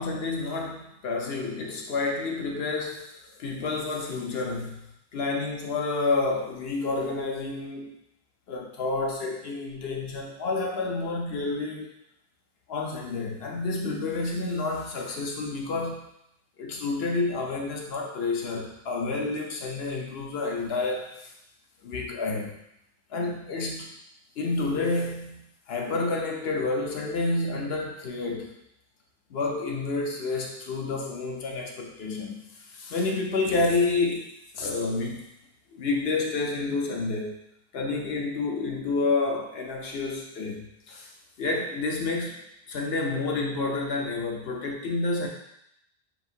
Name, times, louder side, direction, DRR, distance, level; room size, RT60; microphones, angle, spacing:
voice 1, 0.0-7.9 8.5-11.9 12.7-16.1 16.6-21.3 21.8-22.6 23.1-24.0 24.4-28.5 29.3-32.4 32.7-35.3 35.7-37.4 37.7-41.1 41.4-45.3, left 3 dB, 70° left, 1 dB, 0.9 m, -29 dB
5.8 x 2.6 x 2.7 m, 0.78 s
omnidirectional pair, 1.1 m